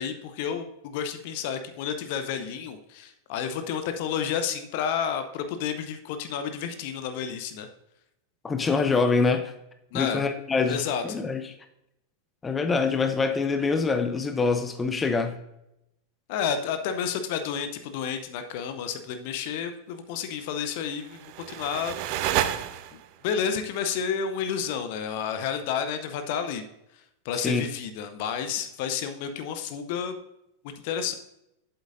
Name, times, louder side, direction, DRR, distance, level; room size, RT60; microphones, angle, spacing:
voice 1, 0.0-7.7 9.9-10.2 10.7-11.0 16.3-22.3 23.2-26.6 26.9-30.2 30.6-31.1, left 7 dB, 50° left, 8 dB, 0.7 m, -31 dB
voice 2, 8.4-9.5 9.9-11.4 12.4-15.4 27.4-27.6, left 4 dB, 15° left, 7 dB, 0.7 m, -25 dB
sound 1, 20.9-23.2, right 12 dB, 45° right, 0.5 m, -30 dB
8.1 x 7.9 x 2.6 m, 0.82 s
figure-of-eight pair, 90°, 0 cm